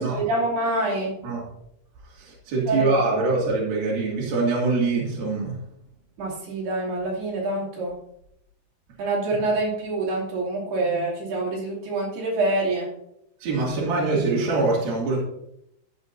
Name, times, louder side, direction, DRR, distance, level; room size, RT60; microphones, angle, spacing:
voice 1, 0.0-1.1 2.7-3.3 6.2-7.9 9.0-12.9, right 2 dB, 85° right, -5 dB, 4.9 m, -26 dB
voice 2, 2.2-5.5 13.4-15.2, right 3 dB, 70° right, -5 dB, 4.1 m, -24 dB
14.5 x 7.9 x 2.7 m, 0.78 s
omnidirectional pair, 4.5 m